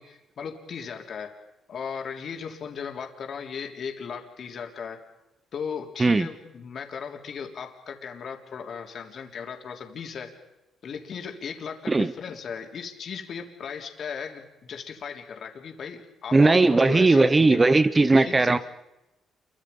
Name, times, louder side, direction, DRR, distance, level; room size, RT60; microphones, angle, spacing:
voice 1, 0.0-1.4 1.7-5.0 5.5-10.4 10.8-17.6 18.1-18.6, left 6 dB, 60° left, 3 dB, 3.6 m, -37 dB
voice 2, 16.3-18.6, right 3 dB, 25° right, 13 dB, 0.9 m, -18 dB
28.5 x 23.5 x 5.5 m, 0.96 s
cardioid pair, 90°, 0 cm